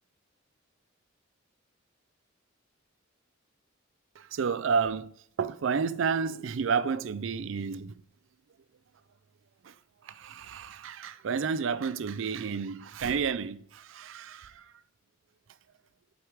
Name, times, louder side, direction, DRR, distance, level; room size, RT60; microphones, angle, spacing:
voice 1, 4.2-5.1 5.4-8.0 9.6-9.7 10.0-14.7, right 6 dB, 70° right, 0.4 m, -31 dB
7.9 x 4.8 x 3.5 m
head